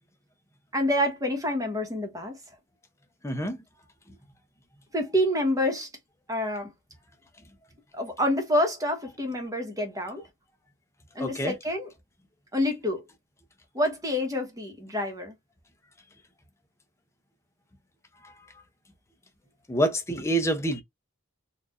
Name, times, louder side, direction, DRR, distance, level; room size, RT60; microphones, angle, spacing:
voice 1, 0.7-2.4 4.9-5.9 6.3-6.7 7.9-10.2 11.1-11.9 12.5-13.0 13.7-15.3, left 1 dB, 15° right, 1.1 m, -27 dB
voice 2, 3.2-3.6 11.2-11.5 19.7-20.8, right 1 dB, 15° left, 0.7 m, -26 dB
4.4 x 2.5 x 2.4 m
head